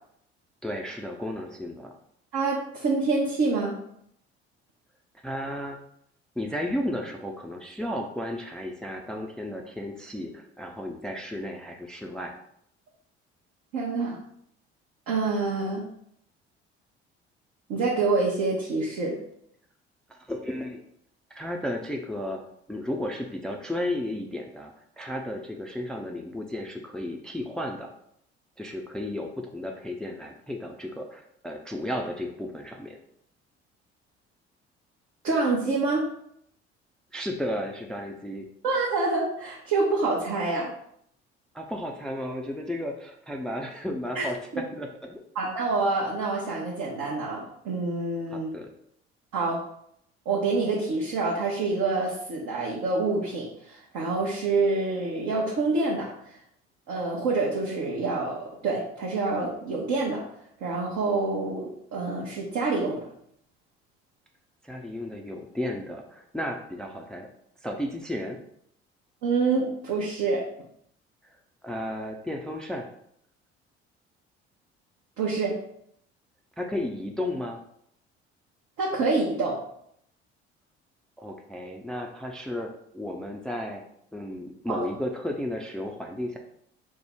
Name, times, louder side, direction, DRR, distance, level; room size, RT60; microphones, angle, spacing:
voice 1, 0.6-1.9 5.2-5.8 6.4-12.3 20.1-20.8 21.3-22.4 22.7-27.9 28.6-33.0 37.1-38.5 41.5-45.2 48.3-48.7 64.6-67.3 67.6-68.4 71.6-72.9 76.6-77.6 81.2-83.8 84.1-86.4, left 1 dB, ahead, 2 dB, 0.4 m, -33 dB
voice 2, 2.3-3.8 13.7-14.2 15.1-15.8 17.7-19.2 35.2-36.1 38.6-40.7 44.1-44.3 44.5-44.6 45.3-48.5 49.3-49.6 50.3-56.1 56.9-60.2 60.6-63.1 69.2-70.4 75.2-75.6 78.8-79.6 84.7-84.9, right 3 dB, 55° right, -4 dB, 0.9 m, -27 dB
4.5 x 2.1 x 3.4 m, 0.70 s
figure-of-eight pair, 55°, 32 cm